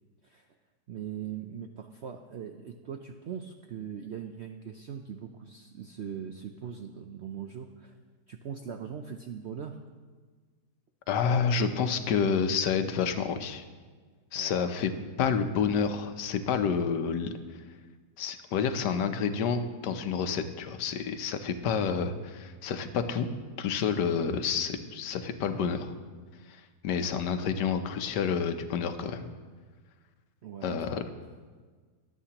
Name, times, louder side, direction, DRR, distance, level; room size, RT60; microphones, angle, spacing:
voice 1, 0.9-8.0 8.3-9.8 14.3-14.6 30.4-31.1, right 8 dB, 70° right, 5 dB, 0.6 m, -40 dB
voice 2, 11.1-13.6 14.3-14.9 15.2-17.3 18.2-23.3 23.6-25.9 26.5-29.3 30.6-31.0, left 6 dB, 80° left, 8 dB, 1.4 m, -29 dB
22.5 x 8.3 x 2.9 m, 1.5 s
omnidirectional pair, 1.8 m